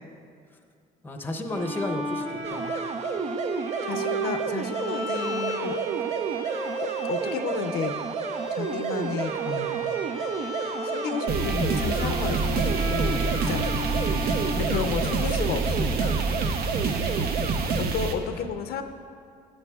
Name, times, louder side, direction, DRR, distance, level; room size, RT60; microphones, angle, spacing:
voice 1, 1.0-2.7 14.7-15.2 17.2-17.6, left 1 dB, 10° left, 4 dB, 0.7 m, -34 dB
Bowed string instrument, 1.5-15.4, right 2 dB, 25° right, 1.8 m, -33 dB
sound 1, 2.4-17.8, right 6 dB, 40° right, 0.4 m, -32 dB
voice 2, 3.8-5.8 6.8-7.9 8.5-9.9 10.8-14.0 14.5-16.1 17.8-18.8, left 6 dB, 70° left, 7 dB, 0.6 m, -32 dB
sound 2, 11.3-18.1, right 3 dB, 65° right, 0.8 m, -27 dB
12.0 x 8.7 x 2.4 m, 2.2 s
cardioid pair, 110°, 17 cm